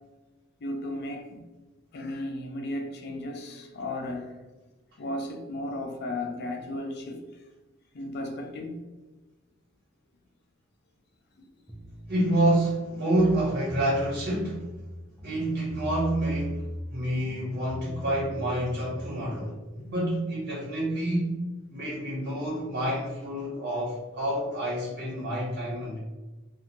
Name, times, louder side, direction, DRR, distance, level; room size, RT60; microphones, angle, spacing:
voice 1, 0.6-1.4 1.9-4.3 5.0-7.3 7.9-8.8 19.8-20.0, left 1 dB, 55° left, 0.4 m, -35 dB
sound 1, 11.7-12.7 13.1-14.9 15.2-16.9 17.2-19.6, left 1 dB, 5° right, 0.4 m, -40 dB
voice 2, 12.1-14.7 15.2-16.6 16.9-21.4 21.7-26.0, right 1 dB, 45° right, 0.7 m, -28 dB
2.6 x 2.3 x 2.6 m
head